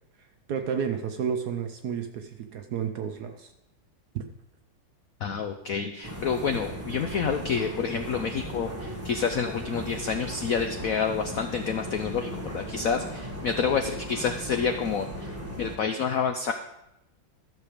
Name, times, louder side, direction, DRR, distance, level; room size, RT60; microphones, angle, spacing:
voice 1, 0.5-3.5 4.1-4.2, right 7 dB, 65° right, 6 dB, 1.0 m, -31 dB
voice 2, 5.2-15.3 15.6-16.5, left 6 dB, 75° left, 7 dB, 0.7 m, -28 dB
sound 1, 6.0-15.8, equal, 10° right, 1.1 m, -37 dB
13.0 x 6.7 x 5.0 m, 0.86 s
omnidirectional pair, 2.2 m